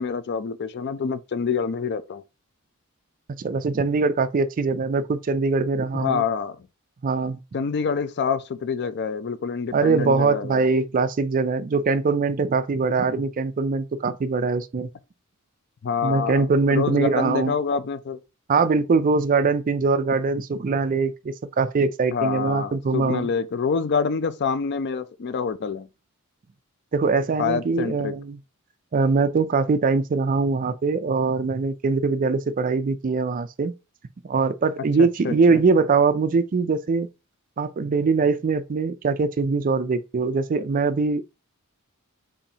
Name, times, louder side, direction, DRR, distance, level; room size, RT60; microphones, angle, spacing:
voice 1, 0.0-2.2 5.9-6.6 7.5-10.6 15.8-18.2 22.1-25.9 27.4-28.1 35.0-35.6, left 5 dB, 50° left, 0.4 m, -26 dB
voice 2, 3.4-6.2 7.0-7.4 9.7-14.9 16.0-17.5 18.5-23.3 26.9-28.4 28.9-33.7 34.2-37.1 37.6-41.2, right 4 dB, 40° right, 0.4 m, -22 dB
7.0 x 2.6 x 2.8 m
head